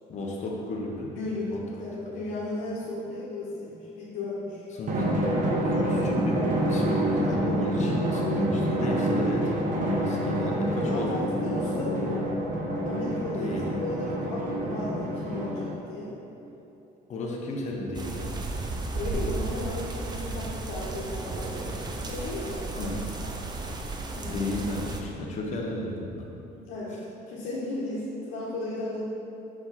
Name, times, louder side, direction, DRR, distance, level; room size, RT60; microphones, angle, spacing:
voice 1, 0.1-1.1 1.5-1.6 2.0-2.2 4.7-5.1 5.6-11.1 13.4-13.7 17.1-18.4 22.8-23.1 24.2-26.3, left 2 dB, 45° left, -2 dB, 1.0 m, -33 dB
voice 2, 1.1-1.5 1.8-4.6 10.8-12.3 12.8-16.1 18.9-22.9 24.1-24.7 26.5-27.0 27.3-29.0, left 2 dB, 90° left, -7 dB, 1.2 m, -35 dB
Drum, 4.9-15.9, right 1 dB, 50° right, 1.3 m, -27 dB
sound 1, 17.9-25.0, right 3 dB, 25° right, 0.6 m, -34 dB
5.9 x 4.8 x 4.1 m, 2.9 s
cardioid pair, 110°, 17 cm